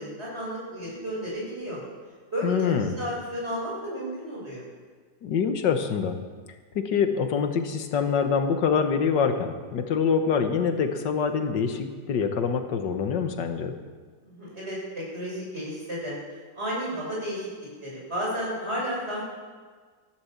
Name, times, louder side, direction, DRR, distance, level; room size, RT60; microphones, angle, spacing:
voice 1, 0.0-1.8 2.3-4.6 14.2-16.1 16.5-17.5 17.8-19.2, equal, 35° right, -5 dB, 6.5 m, -32 dB
voice 2, 2.4-2.9 5.2-6.2 6.8-13.7, left 6 dB, 75° left, 7 dB, 1.8 m, -25 dB
14.5 x 11.5 x 7.2 m, 1.5 s
omnidirectional pair, 1.9 m